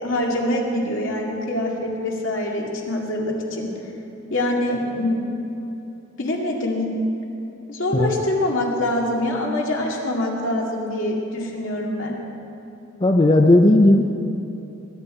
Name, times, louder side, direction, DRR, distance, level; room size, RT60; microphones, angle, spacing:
voice 1, 0.0-3.7 4.3-5.2 6.2-6.8 7.7-12.2, left 1 dB, 70° left, -2 dB, 2.4 m, -24 dB
voice 2, 13.0-14.0, left 1 dB, 25° left, 3 dB, 0.5 m, -15 dB
20.5 x 10.5 x 4.4 m, 2.9 s
head